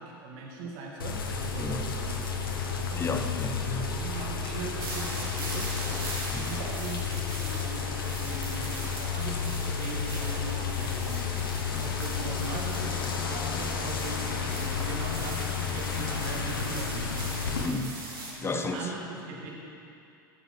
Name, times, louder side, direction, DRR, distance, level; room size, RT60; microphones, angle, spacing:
voice 1, 0.0-3.0 4.0-5.9 6.4-17.2 18.4-19.5, right 3 dB, 55° right, -1 dB, 2.0 m, -40 dB
sound 1, 1.0-17.7, left 6 dB, 75° left, 1.0 m, -32 dB
voice 2, 3.0-3.9 6.3-6.5 11.7-11.8 17.6-18.0 18.4-18.9, left 3 dB, 20° left, 6 dB, 0.9 m, -32 dB
sound 2, 4.8-18.3, right 2 dB, 80° right, 2.6 m, -41 dB
15.0 x 6.8 x 4.3 m, 2.6 s
figure-of-eight pair, 80°, 12 cm